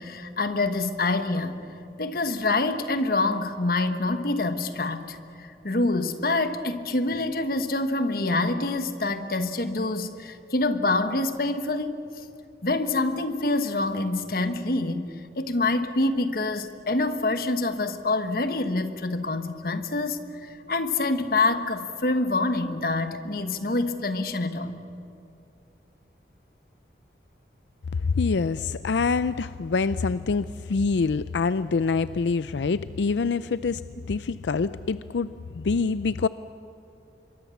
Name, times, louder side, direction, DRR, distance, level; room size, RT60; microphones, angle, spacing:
voice 1, 0.0-1.6 2.0-12.2 12.6-15.1 15.3-24.8, left 2 dB, 55° left, 9 dB, 1.4 m, -26 dB
voice 2, 28.0-33.8 34.1-36.3, left 4 dB, 90° left, 15 dB, 0.5 m, -25 dB
26.0 x 23.0 x 7.1 m, 2.8 s
head